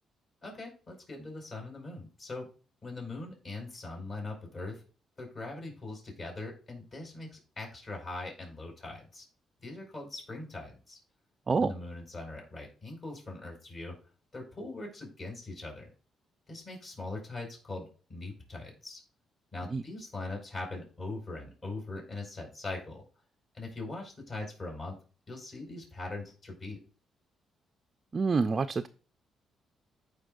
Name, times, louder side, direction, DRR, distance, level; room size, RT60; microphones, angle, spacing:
voice 1, 0.4-2.5 2.8-4.8 5.2-9.2 9.6-11.0 11.6-13.9 14.3-15.9 16.5-19.0 19.5-23.0 23.5-24.9 25.3-26.8, left 2 dB, 45° left, 0 dB, 4.6 m, -41 dB
voice 2, 28.1-28.9, right 4 dB, 35° right, 8 dB, 0.4 m, -27 dB
14.5 x 4.9 x 2.5 m, 0.37 s
cardioid pair, 90°, 0 cm